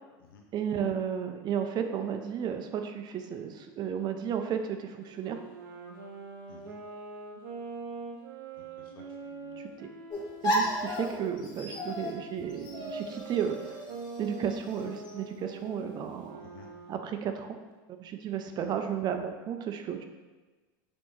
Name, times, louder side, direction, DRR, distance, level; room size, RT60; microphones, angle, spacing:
voice 1, 0.5-5.4 9.6-9.9 10.4-13.8 14.2-16.4 16.9-17.6 18.0-20.0, right 8 dB, 40° right, 6 dB, 0.5 m, -33 dB
Wind instrument woodwind instrument, 5.0-10.9 11.6-17.0, right 4 dB, 80° right, 0.8 m, -44 dB
voice 2, 8.5-9.6 16.4-16.7 18.4-18.7, left 5 dB, 85° left, 1 dB, 0.6 m, -54 dB
sound 1, 10.1-15.1, equal, 40° left, 1.0 m, -34 dB
4.3 x 3.4 x 3.1 m, 1.2 s
hypercardioid pair, 100°, 11 cm